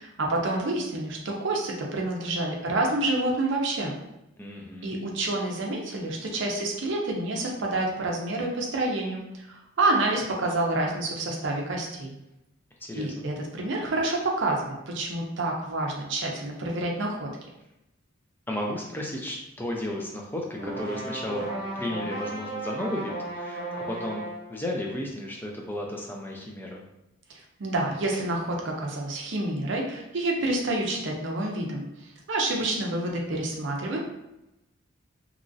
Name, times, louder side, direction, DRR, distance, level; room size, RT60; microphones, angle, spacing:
voice 1, 0.0-4.0 4.8-12.2 12.9-17.3 27.3-31.8 32.3-34.0, right 2 dB, 60° right, 0 dB, 0.5 m, -28 dB
voice 2, 4.4-5.0 12.9-13.1 18.5-21.5 21.8-26.8, left 1 dB, 10° left, -1 dB, 0.3 m, -33 dB
sound 1, 20.5-24.5, right 2 dB, 45° right, 1.0 m, -35 dB
3.0 x 2.5 x 2.5 m, 0.90 s
head